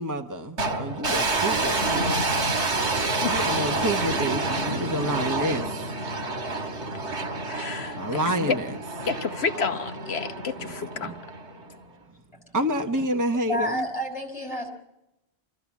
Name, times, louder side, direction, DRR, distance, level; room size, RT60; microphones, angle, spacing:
voice 1, 0.0-2.3 3.2-5.8 7.9-8.8 10.6-11.2 12.5-13.9, right 1 dB, 20° right, 1.0 m, -29 dB
sound 1, 0.6-11.8, right 2 dB, 85° right, 2.2 m, -28 dB
voice 2, 7.5-8.0 8.4-8.6 9.1-11.1, left 5 dB, 70° left, 1.2 m, -29 dB
voice 3, 13.4-14.7, equal, 30° left, 5.2 m, -29 dB
25.0 x 14.5 x 7.2 m
omnidirectional pair, 1.1 m